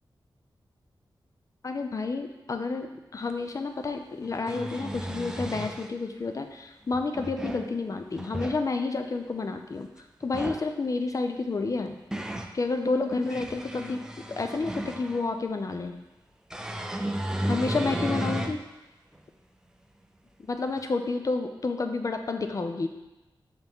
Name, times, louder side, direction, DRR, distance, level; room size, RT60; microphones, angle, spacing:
voice 1, 1.6-2.9 3.1-9.9 10.2-11.9 12.5-14.0 14.4-16.0 17.5-18.6 20.5-22.9, left 3 dB, 40° left, 6 dB, 0.5 m, -30 dB
sound 1, 3.3-3.4 4.2-5.9 6.9-7.7 8.1-8.6 10.2-10.7 11.6-12.5 13.1-15.3 16.5-18.6 19.1-19.2 20.8-20.9, right 1 dB, 10° right, 0.4 m, -33 dB
5.7 x 5.6 x 3.6 m, 1.0 s
wide cardioid pair, 125°, 9 cm